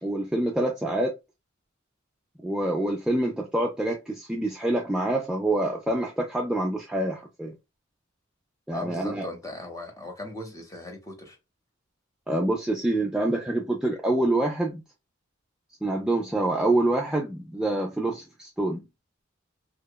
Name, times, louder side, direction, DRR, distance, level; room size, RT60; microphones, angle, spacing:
voice 1, 0.0-1.1 2.4-7.5 8.7-9.3 12.3-14.8 15.8-18.8, right 1 dB, 5° right, 0.3 m, -26 dB
voice 2, 8.7-11.4, left 2 dB, 15° left, 0.7 m, -38 dB
2.8 x 2.2 x 2.2 m
head